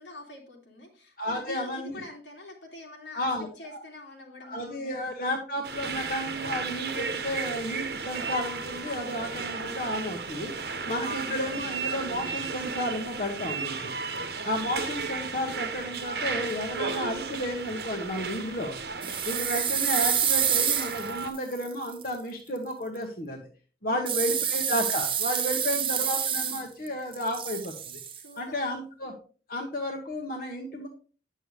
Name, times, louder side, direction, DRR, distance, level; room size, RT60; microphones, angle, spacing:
voice 1, 0.0-5.1 10.7-11.1 23.9-24.3 25.4-26.1 28.1-28.8, left 1 dB, 90° left, 0 dB, 2.7 m, -46 dB
voice 2, 1.2-2.0 3.1-3.8 4.4-13.9 14.4-18.8 19.2-23.4 23.8-28.0 28.4-29.1 29.5-30.9, left 1 dB, 50° left, 2 dB, 1.2 m, -32 dB
sound 1, 5.6-21.3, right 4 dB, 60° right, 1.0 m, -34 dB
sound 2, 19.0-22.1 24.1-26.9 27.1-28.2, right 9 dB, 30° right, 0.7 m, -28 dB
9.8 x 6.6 x 3.3 m, 0.38 s
head